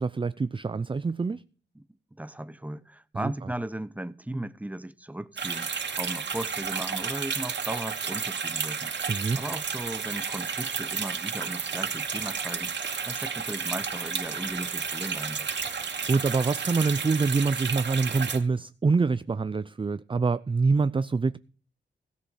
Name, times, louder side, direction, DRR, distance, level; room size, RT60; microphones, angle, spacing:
voice 1, 0.0-1.4 3.1-3.3 9.1-9.4 15.6-21.4, right 4 dB, 25° right, 0.5 m, -26 dB
voice 2, 2.2-8.9 9.4-12.7 13.1-15.5, right 1 dB, 10° right, 1.0 m, -36 dB
sound 1, 5.4-18.4, right 6 dB, 65° right, 2.6 m, -32 dB
16.5 x 7.0 x 5.5 m
cardioid pair, 70°, 19 cm